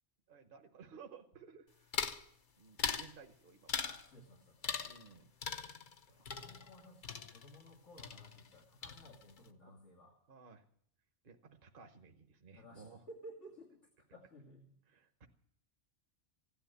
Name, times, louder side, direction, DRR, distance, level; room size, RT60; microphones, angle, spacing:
voice 1, 0.3-1.9 2.6-3.8 4.8-5.6 6.1-6.7 10.3-10.6 11.2-13.0 14.9-15.3, right 5 dB, 50° right, 5 dB, 1.1 m, -57 dB
sound 1, 1.9-2.2 2.8-3.1 3.7-4.1 4.6-5.1 5.4-7.7 8.0-8.6 8.8-9.4, left 5 dB, 45° left, 0.9 m, -40 dB
voice 2, 3.8-4.8 6.1-10.2 12.5-13.8 14.1-14.7, equal, 90° left, -2 dB, 2.7 m, -56 dB
16.0 x 10.5 x 8.0 m, 0.67 s
omnidirectional pair, 1.2 m